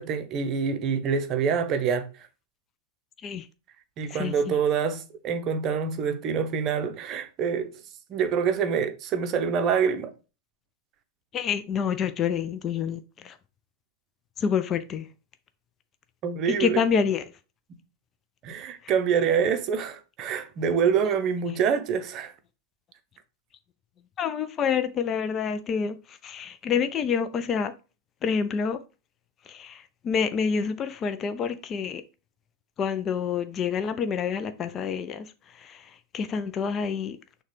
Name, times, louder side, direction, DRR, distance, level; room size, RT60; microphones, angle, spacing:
voice 1, 0.0-2.1 4.0-7.8 8.1-10.1 16.2-16.8 18.4-22.3, right 6 dB, 35° right, 0.6 m, -26 dB
voice 2, 4.2-4.5 11.3-13.3 14.4-15.1 16.6-17.2 24.2-26.0 26.2-27.7 28.2-28.8 29.5-29.8 30.0-32.0 32.8-35.2 35.7-35.8 36.1-37.2, left 6 dB, 30° left, 0.4 m, -27 dB
6.3 x 2.2 x 3.2 m
figure-of-eight pair, 90°, 0 cm